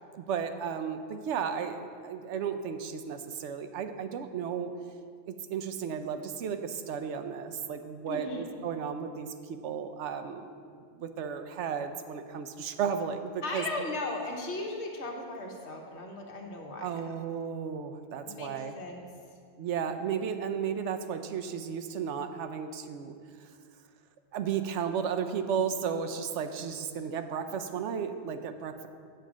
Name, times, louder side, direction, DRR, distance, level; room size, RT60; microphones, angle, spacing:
voice 1, 0.1-4.7 5.3-10.5 11.0-13.7 16.8-18.7 19.6-23.2 24.3-28.9, right 7 dB, 80° right, 8 dB, 0.9 m, -34 dB
voice 2, 8.1-8.5 13.4-17.1 18.2-19.0, left 2 dB, 70° left, 1 dB, 1.4 m, -37 dB
7.9 x 5.1 x 7.3 m, 2.2 s
omnidirectional pair, 1.2 m